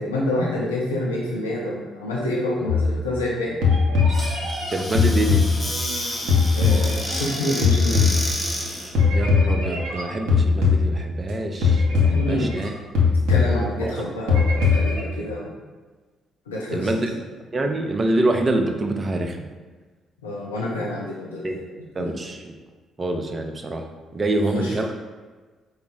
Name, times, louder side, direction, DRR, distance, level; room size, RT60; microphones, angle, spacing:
voice 1, 0.0-3.6 6.6-8.2 12.1-12.5 13.3-15.5 16.5-17.0 20.2-21.6 22.0-22.2 24.3-24.8, left 1 dB, 80° left, -5 dB, 0.5 m, -27 dB
sound 1, 2.7-3.3 3.6-6.0 6.3-8.6 9.0-11.3 11.6-12.7 13.0-14.0 14.3-15.0, left 5 dB, 70° right, 0.7 m, -20 dB
Squeak / Cupboard open or close, 4.1-9.0, equal, 5° left, 0.9 m, -30 dB
voice 2, 4.7-5.4 9.1-12.7 13.8-13.9 16.7-17.1 17.5-19.5 21.4-21.6 22.0-22.5 23.0-24.9, right 2 dB, 30° right, 4 dB, 0.5 m, -25 dB
4.6 x 2.0 x 3.6 m, 1.3 s
figure-of-eight pair, 40°, 0 cm